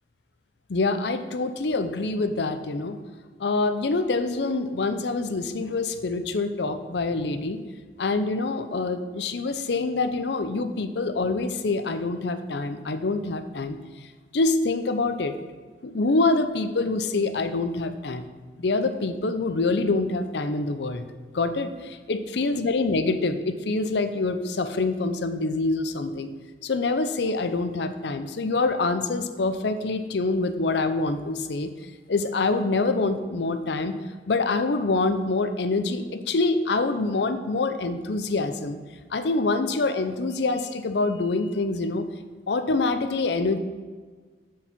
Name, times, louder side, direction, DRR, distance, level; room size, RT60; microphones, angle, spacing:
voice 1, 0.7-3.0 3.4-7.6 8.0-13.8 14.3-15.4 15.8-18.3 18.6-21.1 21.3-26.3 26.6-31.7 32.1-33.9 34.3-38.8 39.1-42.0 42.5-43.6, left 3 dB, 70° left, 10 dB, 0.6 m, -25 dB
8.0 x 4.8 x 5.8 m, 1.5 s
head